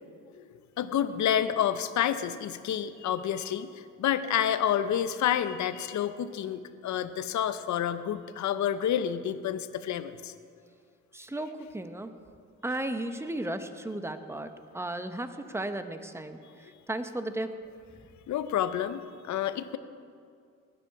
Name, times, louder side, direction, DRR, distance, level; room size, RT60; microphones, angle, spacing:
voice 1, 0.3-10.3 18.3-19.8, left 10 dB, 70° left, 12 dB, 0.8 m, -29 dB
voice 2, 11.1-12.1 12.6-17.5, right 1 dB, 10° right, 8 dB, 1.0 m, -35 dB
19.5 x 9.7 x 4.7 m, 2.3 s
cardioid pair, 90°, 30 cm